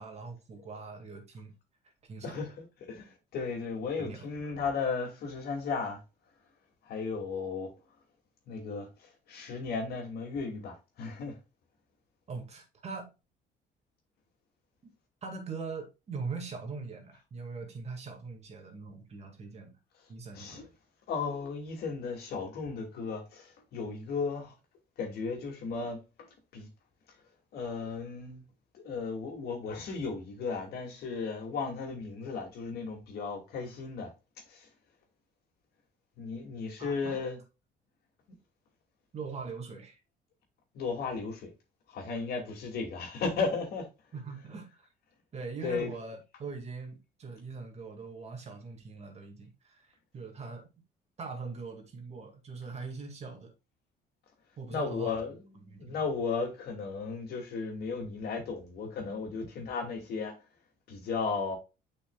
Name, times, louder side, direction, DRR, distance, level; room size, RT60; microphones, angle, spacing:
voice 1, 0.0-1.5 2.0-2.4 4.0-4.5 12.3-13.1 14.8-14.9 15.2-19.8 20.1-20.7 36.8-37.3 39.1-40.0 44.1-44.9 45.3-50.7 51.2-53.5 54.6-55.2 55.5-56.1, right 4 dB, 40° right, 2.2 m, -42 dB
voice 2, 2.2-6.0 6.9-7.7 8.5-8.9 9.3-11.4 20.3-20.6 21.1-24.5 25.0-26.0 26.5-26.7 27.5-28.4 28.7-34.1 34.5-34.7 36.2-37.4 40.7-41.5 41.9-43.9 45.6-45.9 54.7-60.4 60.9-61.6, left 4 dB, 70° left, 2.7 m, -35 dB
7.1 x 5.6 x 2.4 m
cardioid pair, 110°, 17 cm